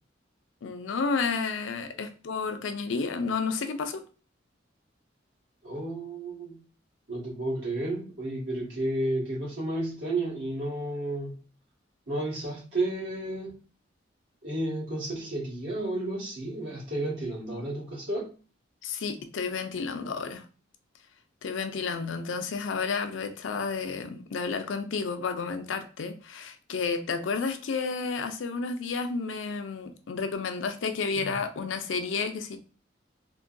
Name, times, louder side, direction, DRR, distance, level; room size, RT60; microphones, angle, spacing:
voice 1, 0.6-4.0 18.8-20.4 21.4-32.6, left 4 dB, 75° left, 0.4 m, -31 dB
voice 2, 5.6-6.6 7.1-11.4 12.1-13.5 14.4-18.3 31.1-31.3, right 1 dB, 90° right, 1.6 m, -32 dB
3.7 x 2.2 x 2.5 m
head